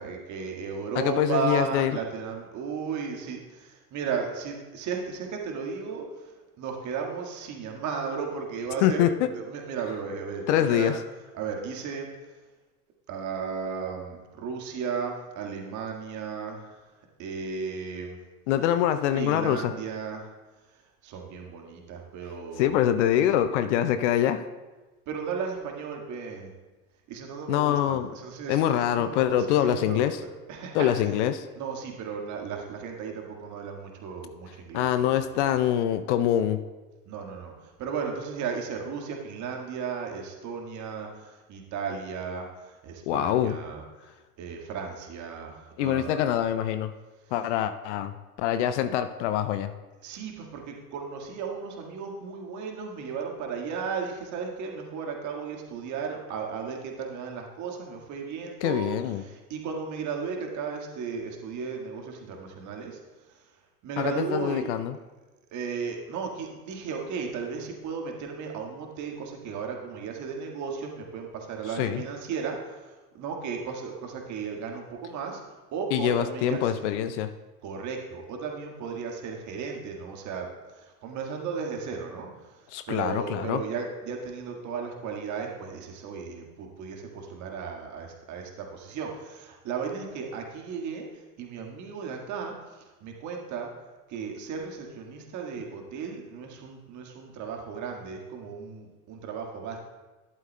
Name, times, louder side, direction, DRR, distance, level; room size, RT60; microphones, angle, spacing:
voice 1, 0.0-3.4 3.9-6.1 6.6-9.1 9.3-10.9 11.3-12.1 13.1-16.6 17.2-18.2 19.1-20.2 21.0-22.8 25.1-26.5 27.1-31.1 31.6-35.4 37.1-37.5 37.8-41.1 41.5-42.5 42.8-43.8 44.4-46.2 50.0-58.9 59.2-62.9 63.8-64.8 65.5-72.6 73.2-75.4 75.7-76.7 77.6-80.5 81.0-82.3 82.9-91.1 91.4-92.5 93.0-93.7 94.1-99.8, right 5 dB, 40° right, 2 dB, 1.7 m, -35 dB
voice 2, 1.0-2.0 8.8-9.3 10.5-11.0 18.5-19.7 22.6-24.4 27.5-28.1 28.5-30.2 30.7-31.4 34.7-36.6 43.1-43.6 45.8-46.9 47.3-49.7 58.6-59.2 64.0-65.0 71.8-72.0 75.9-77.3 82.7-83.6, left 10 dB, 50° left, 11 dB, 0.6 m, -25 dB
12.0 x 11.5 x 2.2 m, 1.2 s
figure-of-eight pair, 75°, 45 cm